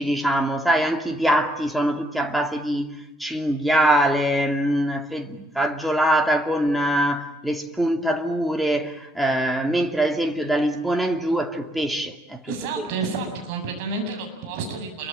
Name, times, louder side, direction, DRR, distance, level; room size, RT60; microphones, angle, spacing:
voice 1, 0.0-12.9, right 1 dB, ahead, 2.4 m, -23 dB
voice 2, 12.5-15.1, right 4 dB, 45° right, 7.8 m, -30 dB
28.5 x 23.5 x 8.9 m
figure-of-eight pair, 90°, 0 cm